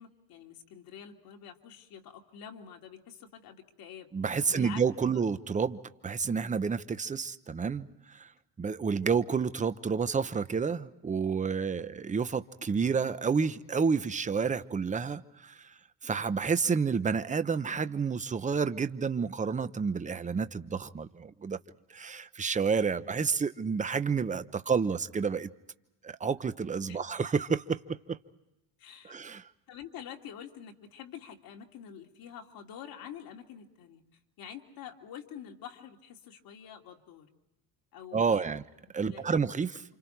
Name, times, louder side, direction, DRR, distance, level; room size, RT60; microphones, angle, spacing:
voice 1, 0.0-4.1 4.5-4.8 5.1-5.2 23.0-23.1 26.9-27.0 28.8-29.2 29.7-34.0 34.4-37.3 37.9-38.6 39.0-39.4, left 9 dB, 60° left, 3.0 m, -47 dB
voice 2, 4.1-7.9 8.1-8.3 8.6-15.5 16.0-21.6 21.9-25.5 26.0-28.2 29.0-29.4 38.1-38.6 38.9-39.8, right 5 dB, 20° right, 0.8 m, -30 dB
30.0 x 27.5 x 4.6 m
cardioid pair, 125°, 39 cm